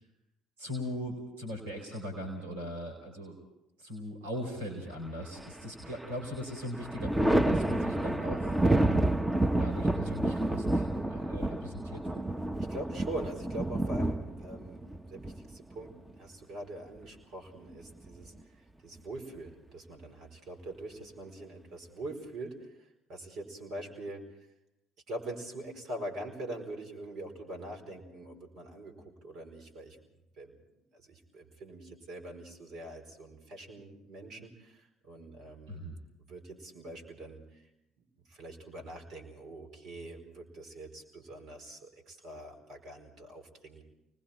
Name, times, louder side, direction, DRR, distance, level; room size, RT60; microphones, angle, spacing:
voice 1, 0.6-3.4 3.8-9.1 9.6-12.3 35.7-36.0, equal, 80° right, 3 dB, 4.3 m, -39 dB
Thunder, 5.4-6.1 6.5-16.1 17.6-18.4, right 1 dB, 10° right, 1.2 m, -29 dB
voice 2, 12.7-24.2 25.1-30.0 30.4-30.5 30.9-35.8 36.3-37.7 38.0-43.8, right 1 dB, 60° right, 3 dB, 4.8 m, -43 dB
29.5 x 20.5 x 4.4 m, 0.85 s
hypercardioid pair, 55°, 0 cm